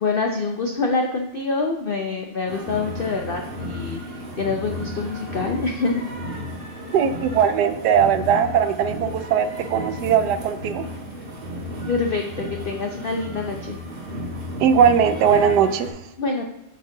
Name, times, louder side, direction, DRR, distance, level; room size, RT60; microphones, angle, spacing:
voice 1, 0.0-6.0 11.9-13.8 16.2-16.4, left 4 dB, 90° left, 3 dB, 0.4 m, -26 dB
sound 1, 2.5-15.9, equal, 35° right, 1.5 m, -33 dB
voice 2, 6.9-10.8 14.6-15.9, right 7 dB, 80° right, 11 dB, 1.2 m, -19 dB
8.9 x 4.2 x 3.8 m, 0.93 s
omnidirectional pair, 1.8 m